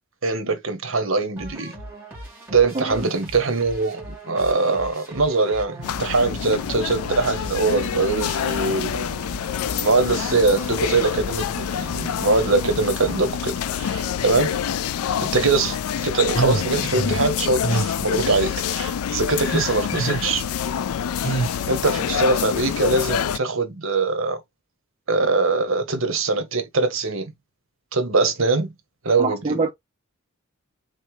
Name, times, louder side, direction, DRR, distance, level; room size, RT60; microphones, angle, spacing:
voice 1, 0.2-1.7 2.5-9.2 9.7-14.5 15.2-20.4 21.2-24.4 25.1-27.3 27.9-28.7 29.0-29.6, right 3 dB, 65° right, 1.0 m, -22 dB
sound 1, 1.4-13.8, right 1 dB, 10° right, 1.8 m, -40 dB
sound 2, 5.8-23.4, left 8 dB, 85° left, 0.3 m, -27 dB
sound 3, 16.3-17.2 17.6-17.9 18.2-18.7 19.4-20.3 21.2-21.6, right 3 dB, 40° left, 2.4 m, -26 dB
voice 2, 29.2-29.7, right 3 dB, 25° right, 0.7 m, -24 dB
3.9 x 3.3 x 3.1 m
head